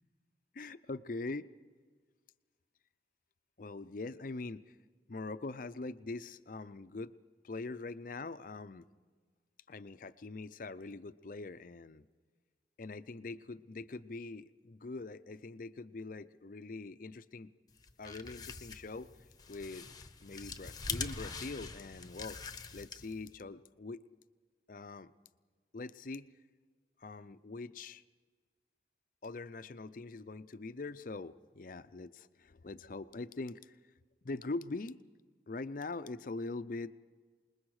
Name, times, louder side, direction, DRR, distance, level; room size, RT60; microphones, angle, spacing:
voice 1, 0.5-1.5 3.6-4.6 5.1-7.1 7.4-8.9 9.7-12.0 12.8-17.5 18.0-19.1 19.5-19.9 20.2-22.4 22.7-24.0 24.7-25.1 25.7-26.3 27.0-28.0 29.2-33.7 34.2-35.0 35.5-36.9, left 3 dB, 45° left, 13 dB, 0.5 m, -43 dB
sound 1, 17.8-23.3, left 5 dB, 20° left, 0.9 m, -43 dB
26.5 x 20.5 x 4.8 m, 1.5 s
head